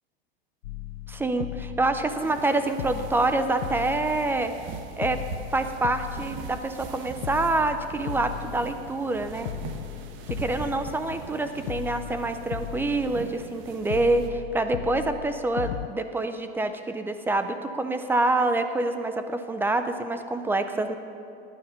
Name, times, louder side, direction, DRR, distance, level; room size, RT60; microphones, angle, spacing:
sound 1, 0.6-2.5 2.8-4.7 5.0-6.9 7.2-9.2 9.5-11.4 11.7-13.6 13.9-15.9, left 15 dB, 80° left, 0.6 m, -37 dB
voice 1, 1.1-4.5 5.0-5.2 5.5-9.5 10.3-21.0, right 2 dB, 5° right, 9 dB, 0.4 m, -26 dB
sound 2, 2.2-14.3, right 6 dB, 40° right, 1.2 m, -42 dB
16.0 x 9.9 x 5.7 m, 2.6 s
supercardioid pair, 135°, 31 cm